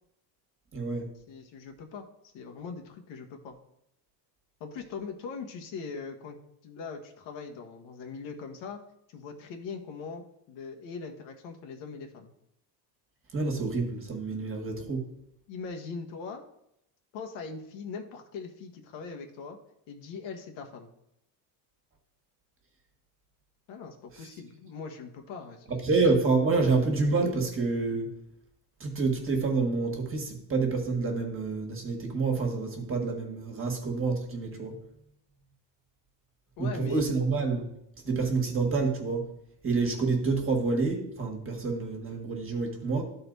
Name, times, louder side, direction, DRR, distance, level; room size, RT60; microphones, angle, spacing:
voice 1, 0.7-1.1 13.3-15.1 25.8-28.1 28.8-34.8 36.6-37.7 38.0-39.2 39.6-43.0, right 4 dB, 25° right, 2 dB, 1.8 m, -28 dB
voice 2, 1.3-3.6 4.6-6.4 6.6-8.8 9.1-12.3 15.5-16.4 17.1-19.6 19.9-20.9 23.7-25.8 36.6-37.0, left 5 dB, 65° left, 4 dB, 1.4 m, -41 dB
12.5 x 4.3 x 4.0 m, 0.77 s
cardioid pair, 120°, 48 cm